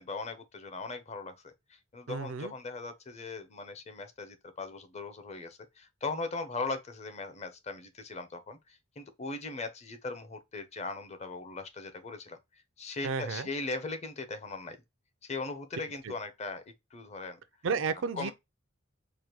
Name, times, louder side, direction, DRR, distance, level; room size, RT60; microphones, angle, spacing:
voice 1, 0.0-12.4 12.8-14.8 15.2-16.6 16.9-17.4 18.1-18.3, left 3 dB, 35° left, 0.7 m, -39 dB
voice 2, 2.1-2.5 13.0-13.5 16.0-16.1 17.6-18.3, right 5 dB, 75° right, 0.5 m, -32 dB
4.8 x 2.2 x 2.9 m
head